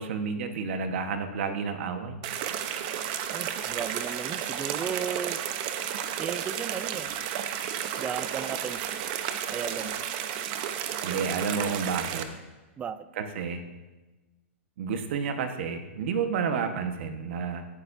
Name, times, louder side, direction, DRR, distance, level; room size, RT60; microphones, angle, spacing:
voice 1, 0.0-2.2 11.0-12.3 13.1-13.6 14.8-17.7, right 6 dB, 60° right, 7 dB, 1.4 m, -30 dB
sound 1, 2.2-12.2, right 9 dB, 45° right, 1.0 m, -32 dB
voice 2, 3.3-5.4 6.2-7.1 8.0-9.0 9.5-10.0 12.8-13.1, right 7 dB, 15° right, 14 dB, 0.5 m, -35 dB
17.0 x 12.0 x 2.7 m, 1.2 s
hypercardioid pair, 140°, 7 cm